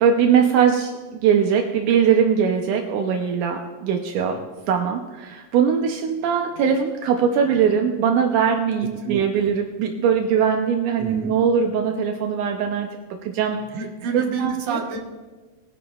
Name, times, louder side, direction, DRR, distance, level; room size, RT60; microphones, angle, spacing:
voice 1, 0.0-4.3 4.7-12.9 13.2-13.6 14.1-14.8, right 7 dB, 80° right, 3 dB, 2.2 m, -21 dB
voice 2, 9.0-9.4 11.0-11.3 13.7-15.0, right 6 dB, 60° right, 1 dB, 2.3 m, -29 dB
21.5 x 11.0 x 2.4 m, 1.3 s
omnidirectional pair, 3.7 m